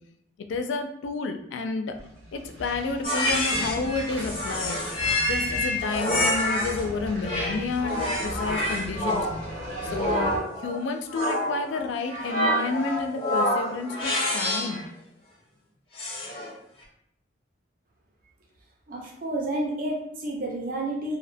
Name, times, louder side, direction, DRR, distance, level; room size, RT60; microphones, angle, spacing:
voice 1, 0.5-2.0 2.3-4.8 5.3-9.3 9.9-10.3 10.6-14.9, left 3 dB, 80° left, 6 dB, 0.3 m, -30 dB
sound 1, 1.9-10.4, right 1 dB, 80° right, 0.8 m, -38 dB
sound 2, 3.0-6.8 7.2-14.8 16.0-16.5, left 1 dB, 30° left, 0.5 m, -27 dB
voice 2, 18.9-21.2, right 1 dB, 45° right, -1 dB, 0.4 m, -30 dB
2.6 x 2.0 x 2.5 m, 0.73 s
head